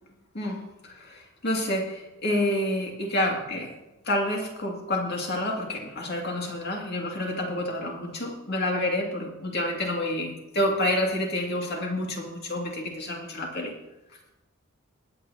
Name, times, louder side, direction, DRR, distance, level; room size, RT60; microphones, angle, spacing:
voice 1, 0.3-3.7 4.0-13.7, left 1 dB, 50° left, 0 dB, 2.4 m, -28 dB
21.0 x 8.5 x 2.9 m, 0.99 s
head